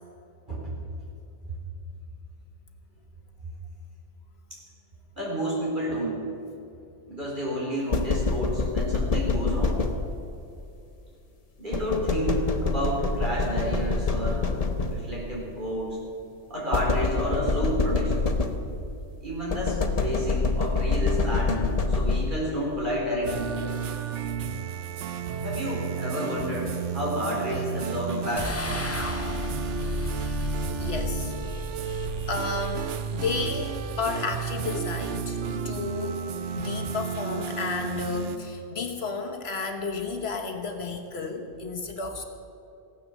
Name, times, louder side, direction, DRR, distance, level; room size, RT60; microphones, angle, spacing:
voice 1, 5.2-6.2 7.1-9.8 11.6-14.5 14.9-16.0 16.5-18.3 19.2-23.6 25.4-28.6, equal, 45° right, -4 dB, 4.3 m, -30 dB
sound 1, 7.9-10.4 11.7-15.3 16.7-18.9 19.5-22.6, left 3 dB, 35° left, 0.9 m, -26 dB
sound 2, 23.2-38.4, right 6 dB, 80° right, 1.1 m, -32 dB
sound 3, 28.4-33.7, left 2 dB, 15° left, 0.5 m, -34 dB
voice 2, 30.8-35.4 35.6-36.2 36.5-42.2, left 4 dB, 60° left, 3 dB, 1.3 m, -32 dB
15.5 x 9.6 x 7.3 m, 2.8 s
omnidirectional pair, 1.2 m